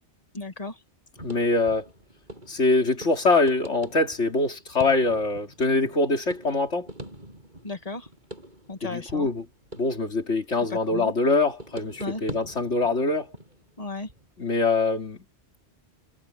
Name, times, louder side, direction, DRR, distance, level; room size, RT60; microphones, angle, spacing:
voice 1, 0.3-0.8 7.6-8.1 8.7-9.3 10.7-11.1 12.0-12.2 13.8-14.1, left 3 dB, 30° left, 2.1 m, -34 dB
voice 2, 1.2-1.9 2.5-6.9 8.8-9.4 9.8-13.3 14.4-15.2, left 3 dB, 85° left, 3.2 m, -24 dB
sound 1, 1.2-11.2 11.6-14.3, right 1 dB, 40° right, 8.1 m, -44 dB
omnidirectional pair, 1.2 m